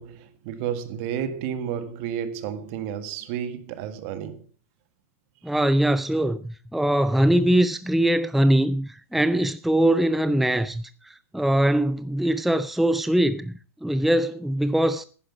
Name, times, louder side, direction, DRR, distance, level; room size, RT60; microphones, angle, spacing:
voice 1, 0.0-4.4, right 9 dB, 50° right, 1.8 m, -31 dB
voice 2, 5.4-13.5 13.8-15.0, right 1 dB, ahead, 0.5 m, -22 dB
10.5 x 9.9 x 5.8 m
hypercardioid pair, 110°, 8 cm